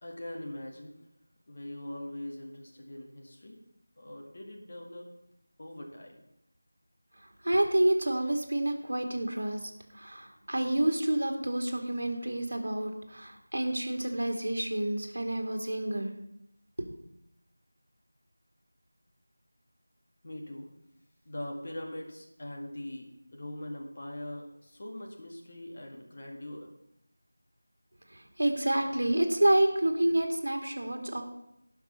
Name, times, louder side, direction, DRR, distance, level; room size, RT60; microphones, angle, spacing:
voice 1, 0.0-1.0 1.5-3.6 4.0-5.1 5.6-6.2 20.2-20.7 21.3-26.7, left 1 dB, 30° left, 0 dB, 1.9 m, -42 dB
voice 2, 7.2-16.1 16.8-16.9 28.1-31.2, right 1 dB, 60° right, 4 dB, 2.4 m, -29 dB
17.5 x 5.8 x 5.7 m, 0.80 s
figure-of-eight pair, 180°, 0 cm